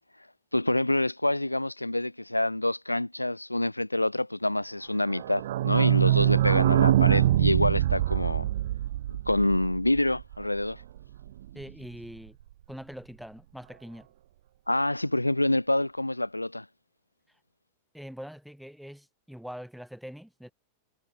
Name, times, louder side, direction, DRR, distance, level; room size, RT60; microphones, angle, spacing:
voice 1, 0.5-8.4 9.1-10.8 14.7-16.7, left 1 dB, 85° left, 1.7 m, -27 dB
sound 1, 5.1-10.6 11.0-11.1 11.2-11.3 11.6-11.7, right 13 dB, 55° right, 0.8 m, -24 dB
voice 2, 11.5-12.4 12.7-14.1 17.3-17.4 17.9-20.5, equal, ahead, 5.7 m, -43 dB
figure-of-eight pair, 90°, 0 cm